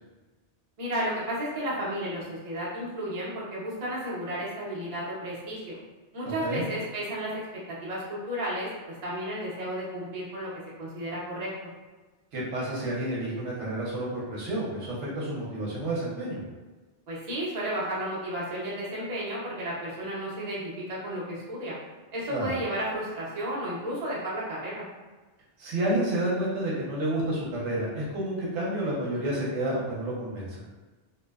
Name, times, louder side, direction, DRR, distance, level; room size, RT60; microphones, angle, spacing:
voice 1, 0.8-5.8 6.1-7.3 7.8-10.5 10.8-11.5 17.1-21.8 22.1-24.8, right 1 dB, 40° right, -7 dB, 0.7 m, -33 dB
voice 2, 12.3-16.4 22.3-22.5 25.6-30.5, right 1 dB, 75° right, -5 dB, 1.0 m, -30 dB
2.6 x 2.1 x 2.2 m, 1.2 s
omnidirectional pair, 1.2 m